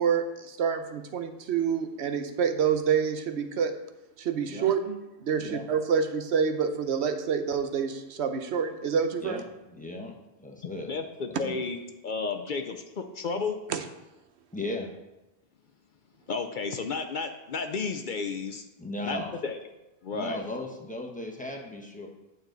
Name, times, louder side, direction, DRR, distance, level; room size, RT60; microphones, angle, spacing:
voice 1, 0.0-3.7 4.2-9.4 13.7-13.8, right 7 dB, 85° right, 8 dB, 1.0 m, -27 dB
voice 2, 9.2-10.1 10.4-10.9 11.4-11.6 14.5-14.9 18.8-19.4 20.1-22.1, left 1 dB, 10° left, 0 dB, 1.1 m, -36 dB
voice 3, 10.9-11.8 12.0-13.6 16.3-18.6 19.0-19.6 20.0-20.4, left 4 dB, 55° left, 6 dB, 0.7 m, -32 dB
8.9 x 6.7 x 3.9 m, 0.99 s
omnidirectional pair, 1.1 m